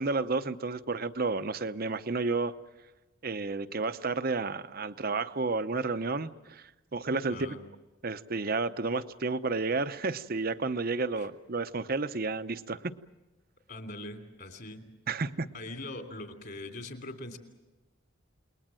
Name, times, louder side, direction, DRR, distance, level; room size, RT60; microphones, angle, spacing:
voice 1, 0.0-2.5 3.2-7.5 8.0-12.9 15.1-15.5, right 3 dB, 45° right, 12 dB, 0.8 m, -31 dB
voice 2, 7.3-7.6 11.2-11.3 13.7-14.9 15.5-17.4, left 2 dB, 50° left, 5 dB, 3.1 m, -42 dB
29.0 x 21.0 x 7.7 m, 1.1 s
head